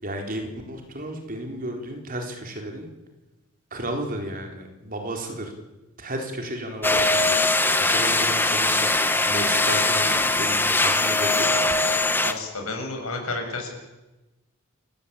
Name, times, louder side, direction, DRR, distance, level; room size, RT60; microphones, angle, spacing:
voice 1, 0.0-2.9 3.7-5.5 6.0-11.8, right 1 dB, 40° right, 3 dB, 4.2 m, -33 dB
sound 1, 6.8-12.3, left 2 dB, 10° left, 1.3 m, -21 dB
voice 2, 12.0-13.7, left 3 dB, 80° left, 3 dB, 7.1 m, -31 dB
29.0 x 16.0 x 8.8 m, 1.1 s
head